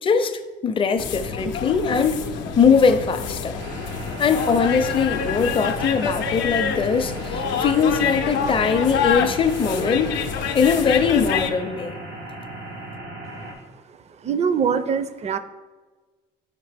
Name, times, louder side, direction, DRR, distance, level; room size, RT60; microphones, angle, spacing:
voice 1, 0.0-2.2 2.6-3.6 4.2-10.1 10.5-11.9, left 6 dB, 30° left, 7 dB, 0.5 m, -21 dB
sound 1, 1.0-11.5, left 6 dB, 85° left, 0.5 m, -27 dB
sound 2, 3.6-13.5, right 1 dB, 85° right, 1.6 m, -37 dB
voice 2, 14.2-15.4, right 6 dB, 35° right, 12 dB, 0.4 m, -23 dB
5.8 x 5.0 x 3.4 m, 1.3 s
cardioid pair, 95°, 19 cm